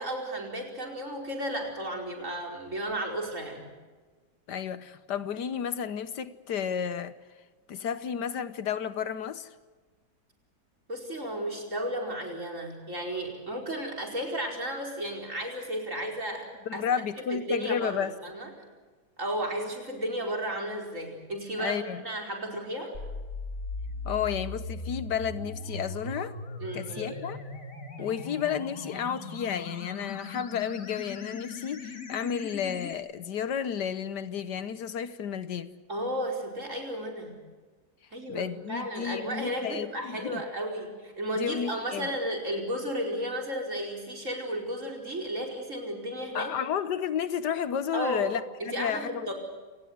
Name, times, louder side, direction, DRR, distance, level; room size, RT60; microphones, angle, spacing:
voice 1, 0.0-3.7 10.9-16.8 17.3-18.5 19.2-22.9 26.6-27.2 28.0-28.1 35.9-37.4 38.1-46.5 47.9-48.3 48.6-49.3, equal, 45° right, 5.3 m, -33 dB
voice 2, 4.5-7.2 7.7-9.5 16.7-18.1 21.6-22.0 24.0-26.3 26.7-27.4 28.0-35.7 38.3-40.4 41.3-42.1 46.3-49.3, left 8 dB, 70° left, 1.6 m, -32 dB
sound 1, 22.9-32.9, left 3 dB, 50° left, 2.7 m, -39 dB
28.0 x 19.0 x 8.1 m
omnidirectional pair, 1.9 m